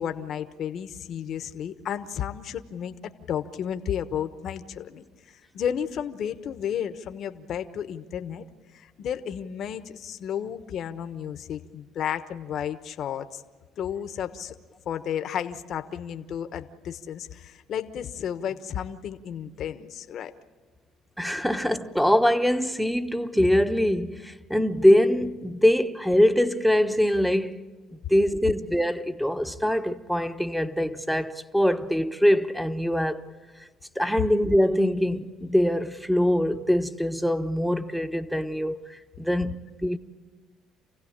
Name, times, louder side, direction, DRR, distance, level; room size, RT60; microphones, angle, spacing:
voice 1, 0.0-5.0 5.5-8.4 8.7-13.4 13.8-14.5 14.8-20.3 21.4-21.5, left 9 dB, 60° left, 1.2 m, -32 dB
voice 2, 21.2-27.6 27.9-33.3 33.9-39.6 39.8-40.0, equal, ahead, 1.1 m, -23 dB
28.0 x 16.5 x 8.8 m
supercardioid pair, 90°, 0 cm